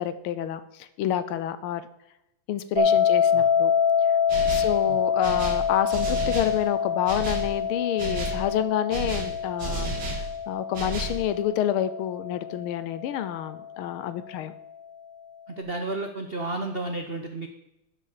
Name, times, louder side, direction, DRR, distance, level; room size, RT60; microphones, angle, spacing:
voice 1, 0.0-1.8 2.5-3.7 4.5-14.5, left 10 dB, 80° left, 13 dB, 1.6 m, -28 dB
sound 1, 2.8-13.7, left 7 dB, 15° right, 4.4 m, -26 dB
sound 2, 4.3-4.8 5.2-6.6 7.1-7.5 8.0-8.4 8.9-10.3 10.7-11.2, right 3 dB, 55° right, 2.7 m, -32 dB
voice 2, 15.5-17.5, right 2 dB, 90° right, 5 dB, 0.5 m, -32 dB
12.0 x 6.1 x 6.5 m, 0.89 s
omnidirectional pair, 2.4 m